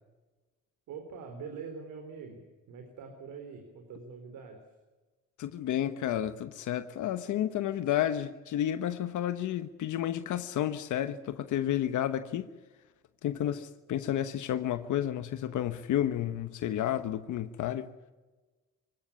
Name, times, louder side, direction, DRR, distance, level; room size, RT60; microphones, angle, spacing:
voice 1, 0.9-4.6, right 5 dB, 85° right, 3.9 m, -44 dB
voice 2, 5.4-12.5 13.2-17.9, left 11 dB, 75° left, 1.1 m, -31 dB
25.0 x 17.0 x 8.6 m
cardioid pair, 90°, 30 cm